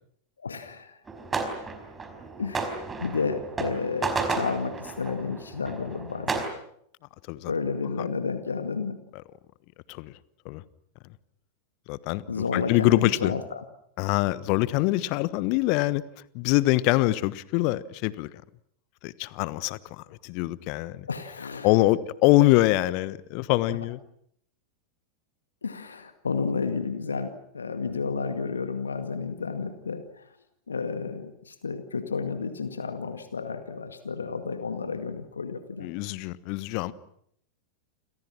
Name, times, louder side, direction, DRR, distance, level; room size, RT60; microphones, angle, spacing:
voice 1, 0.4-1.0 2.4-6.5 7.5-9.0 12.3-13.6 21.1-21.7 25.6-30.3 30.7-35.9, left 5 dB, 75° left, 8 dB, 2.1 m, -31 dB
sound 1, 1.1-6.5, right 3 dB, 15° right, 4.8 m, -32 dB
voice 2, 11.9-13.3 14.0-16.0 16.3-18.3 19.0-21.1 21.6-24.0 35.8-36.9, left 18 dB, 45° left, 18 dB, 1.2 m, -24 dB
29.5 x 27.0 x 6.2 m, 0.70 s
figure-of-eight pair, 90°, 0 cm